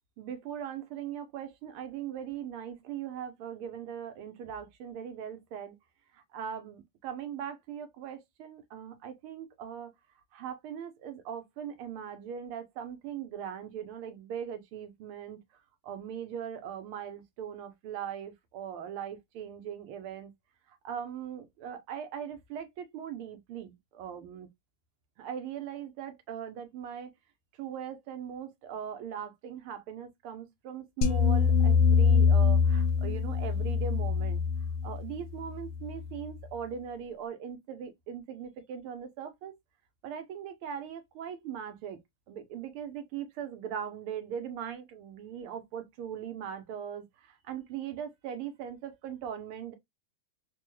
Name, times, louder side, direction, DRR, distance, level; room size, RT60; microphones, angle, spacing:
voice 1, 0.2-5.8 6.1-9.9 10.3-15.4 15.8-20.3 20.7-24.5 25.2-27.1 27.6-34.4 34.8-39.5 40.0-42.0 42.3-49.7, right 8 dB, 80° right, 1.7 m, -40 dB
sound 1, 31.0-36.2, left 6 dB, 80° left, 1.5 m, -25 dB
4.1 x 2.2 x 3.1 m
omnidirectional pair, 2.3 m